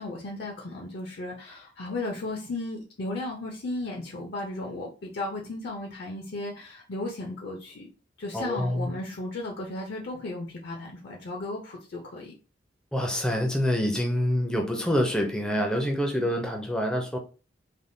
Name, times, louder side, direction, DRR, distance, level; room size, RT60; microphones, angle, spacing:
voice 1, 0.0-7.9 8.2-12.3, left 2 dB, 60° left, 0 dB, 0.5 m, -35 dB
voice 2, 8.3-8.9 12.9-17.2, equal, 5° left, 2 dB, 0.4 m, -26 dB
3.4 x 2.2 x 2.6 m, 0.34 s
head